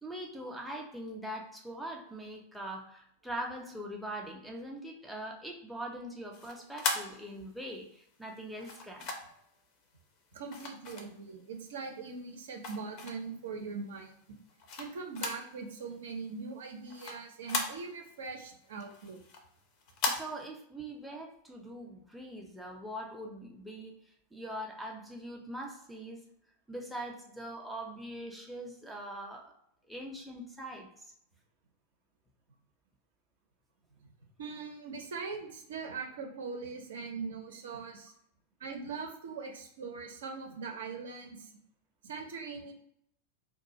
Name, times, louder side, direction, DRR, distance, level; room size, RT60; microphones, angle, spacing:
voice 1, 0.0-9.1 20.1-23.9 24.3-26.2 26.7-29.5 29.9-31.1, right 1 dB, ahead, -1 dB, 0.6 m, -42 dB
sound 1, 6.3-7.8 8.6-9.5 10.5-11.6 12.0-13.4 13.9-15.5 15.8-15.9 16.3-18.2 18.6-20.2, left 4 dB, 40° left, 0.6 m, -37 dB
voice 2, 10.3-14.1 14.8-19.2 34.0-34.1 34.4-38.1 38.6-41.5 42.0-42.7, right 4 dB, 60° right, 2 dB, 0.6 m, -41 dB
2.4 x 2.3 x 3.9 m, 0.71 s
figure-of-eight pair, 90°, 0 cm